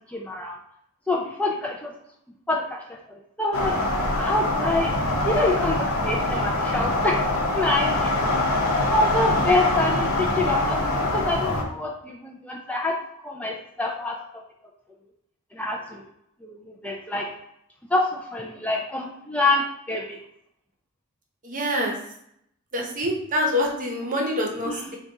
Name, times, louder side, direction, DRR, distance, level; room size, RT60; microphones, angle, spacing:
voice 1, 0.1-0.6 1.1-1.9 2.5-2.8 3.1-3.8 4.2-4.9 5.2-7.2 7.5-8.4 8.9-13.0 13.2-14.2 15.5-16.0 16.4-16.6 16.8-17.3 17.9-20.2 24.6-24.9, left 2 dB, 5° left, -1 dB, 0.3 m, -26 dB
sound 1, 3.5-11.6, left 2 dB, 90° left, 0.7 m, -24 dB
voice 2, 21.4-21.9 22.7-25.0, left 1 dB, 40° right, 0 dB, 0.7 m, -26 dB
4.0 x 2.3 x 3.7 m, 0.74 s
head